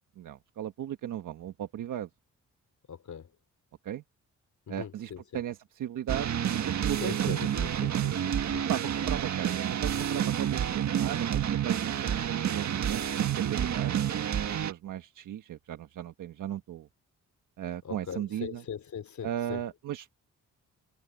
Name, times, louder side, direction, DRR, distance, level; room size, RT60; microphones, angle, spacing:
voice 1, 0.2-2.1 3.8-4.0 4.7-6.3 6.8-7.4 7.8-8.1 8.7-16.9 17.6-18.6 19.2-20.1, right 11 dB, 85° right, 1.4 m, -37 dB
voice 2, 2.9-3.3 4.7-5.2 7.0-8.7 17.8-19.6, left 8 dB, 65° left, 3.8 m, -40 dB
sound 1, 6.1-14.7, right 9 dB, 65° right, 1.6 m, -29 dB
cardioid pair, 85°, 30 cm